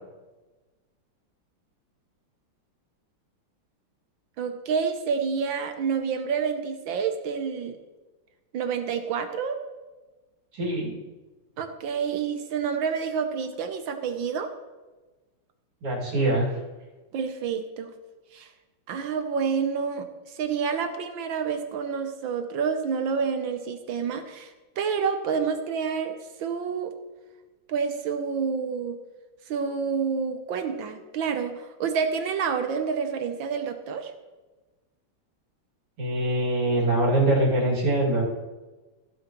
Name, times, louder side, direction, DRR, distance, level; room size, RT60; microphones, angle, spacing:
voice 1, 4.4-7.8 8.5-9.6 11.6-14.5 17.1-17.9 18.3-18.5 18.9-26.9 27.7-29.0 29.5-34.1, right 6 dB, 70° right, 7 dB, 1.4 m, -28 dB
voice 2, 10.5-10.9 15.8-16.6 36.0-38.2, right 1 dB, 85° right, -5 dB, 3.5 m, -23 dB
15.5 x 8.1 x 3.0 m, 1.2 s
omnidirectional pair, 2.4 m